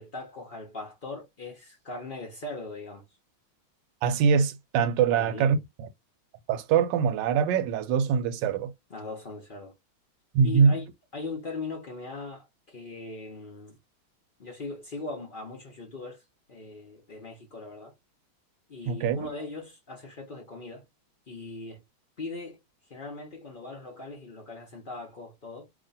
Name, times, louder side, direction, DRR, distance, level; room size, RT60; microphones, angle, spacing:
voice 1, 0.0-3.0 5.1-5.6 8.9-9.7 10.4-10.9 11.1-13.8 14.4-16.2 16.5-17.9 18.7-20.8 21.3-21.8 22.2-22.6 22.9-25.7, left 3 dB, 85° left, 0.4 m, -40 dB
voice 2, 4.0-5.6 6.5-8.7 10.3-10.8 18.9-19.3, right 6 dB, 70° right, 1.2 m, -23 dB
3.0 x 2.7 x 4.0 m
omnidirectional pair, 2.3 m